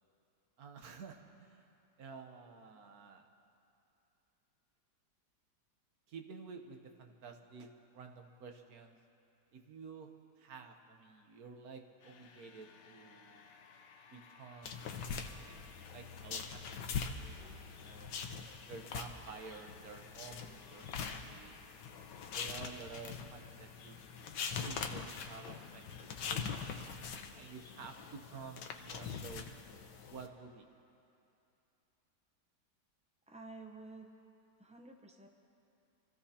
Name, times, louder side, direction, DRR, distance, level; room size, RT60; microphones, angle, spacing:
voice 1, 0.6-1.7 2.0-3.3 6.1-9.0 9.5-10.1 10.4-13.5 14.1-16.9 17.2-18.2 18.7-21.6 22.3-24.0 24.6-26.5 27.4-29.5 30.1-30.7, right 5 dB, 60° right, 4 dB, 1.4 m, -51 dB
sound 1, 12.0-27.1, left 5 dB, 55° left, 0.9 m, -60 dB
sound 2, 14.6-30.3, left 6 dB, 85° left, 1.5 m, -43 dB
voice 2, 33.3-34.1 34.6-35.3, right 3 dB, 10° right, 2 dB, 0.3 m, -51 dB
27.0 x 14.5 x 2.9 m, 2.7 s
omnidirectional pair, 1.8 m